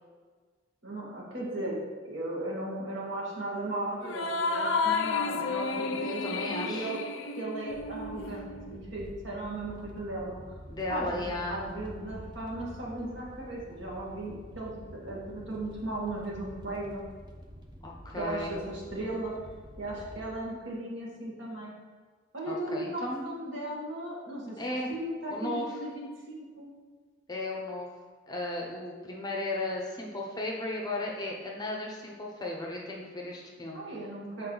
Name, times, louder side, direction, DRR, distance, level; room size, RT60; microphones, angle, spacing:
voice 1, 0.8-7.0 7.4-10.5 10.9-17.0 18.1-19.3 19.8-21.7 22.3-26.7 33.7-34.5, right 1 dB, 65° right, -5 dB, 1.7 m, -36 dB
sound 1, 4.0-8.8, left 4 dB, 70° left, 0.4 m, -31 dB
voice 2, 6.0-6.9 10.7-11.6 17.8-18.6 22.5-23.2 24.6-24.9 25.3-25.7 27.3-27.9 28.3-33.8, left 2 dB, 20° left, -1 dB, 0.7 m, -35 dB
sound 2, 7.7-20.3, equal, 20° right, 0.6 m, -48 dB
6.4 x 4.5 x 3.9 m, 1.5 s
head